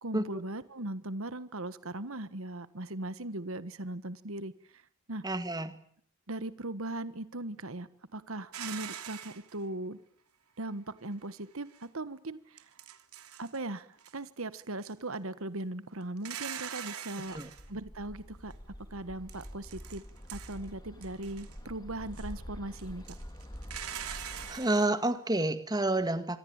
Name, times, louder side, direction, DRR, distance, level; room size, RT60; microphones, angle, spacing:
voice 1, 0.0-4.8 5.1-5.2 6.3-10.0 10.6-12.7 13.4-17.4 17.7-20.0 20.3-23.2, right 2 dB, 65° right, 14 dB, 1.4 m, -39 dB
voice 2, 5.2-5.8 17.3-17.5 24.5-26.4, right 2 dB, 15° right, 10 dB, 1.9 m, -29 dB
sound 1, 8.5-9.6 11.7-11.8 12.6-13.6 14.0-14.2 14.6-15.1 16.2-17.7 19.3-20.7 21.0-21.6 22.1-22.3 22.8-24.9, right 9 dB, 80° right, 3.0 m, -42 dB
Bird, 17.3-24.6, equal, 20° left, 4.0 m, -46 dB
27.0 x 24.5 x 8.8 m, 0.63 s
head